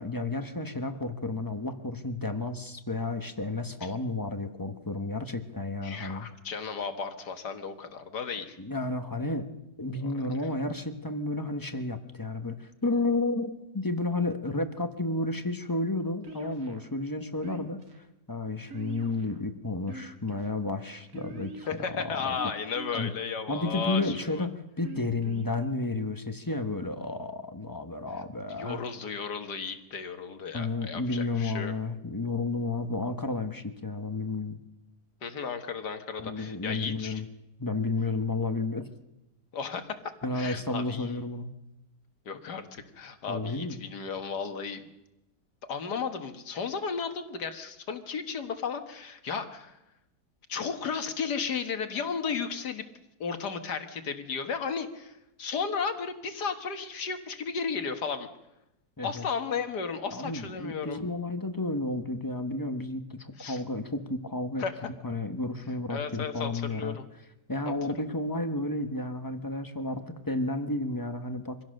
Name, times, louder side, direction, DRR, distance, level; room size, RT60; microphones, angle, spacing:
voice 1, 0.0-6.3 8.6-9.5 9.8-17.8 18.3-22.4 22.9-23.1 23.5-28.8 30.5-34.6 36.2-37.3 37.6-38.9 40.2-41.5 43.3-43.8 59.0-59.2 60.1-67.0 67.5-71.6, left 2 dB, 15° left, 8 dB, 1.0 m, -32 dB
voice 2, 5.8-8.6 10.0-10.1 21.7-24.5 28.6-31.7 35.2-37.2 39.5-40.0 40.3-41.2 42.3-44.8 45.7-49.8 50.5-52.9 53.2-55.1 55.4-58.3 59.0-61.0 63.4-63.6 64.6-64.9 65.9-67.0 67.7-67.8, left 6 dB, 65° left, 7 dB, 2.0 m, -34 dB
sound 1, 16.2-16.9 17.4-18.0 18.7-19.4 19.8-20.5 21.1-21.8 22.4-23.0 23.6-24.3 24.8-25.5, right 4 dB, 55° right, 2.4 m, -43 dB
24.5 x 16.5 x 6.5 m, 0.90 s
omnidirectional pair, 1.9 m